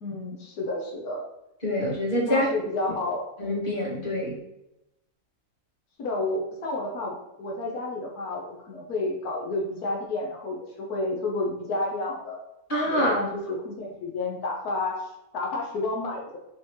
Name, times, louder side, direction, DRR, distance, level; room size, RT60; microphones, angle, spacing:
voice 1, 0.0-1.2 2.3-3.3 6.0-12.4 12.8-16.4, left 2 dB, 85° left, -1 dB, 1.6 m, -31 dB
voice 2, 1.6-2.5 3.4-4.4 12.7-13.2, equal, 35° left, -6 dB, 2.3 m, -25 dB
7.4 x 4.1 x 3.1 m, 0.91 s
omnidirectional pair, 1.6 m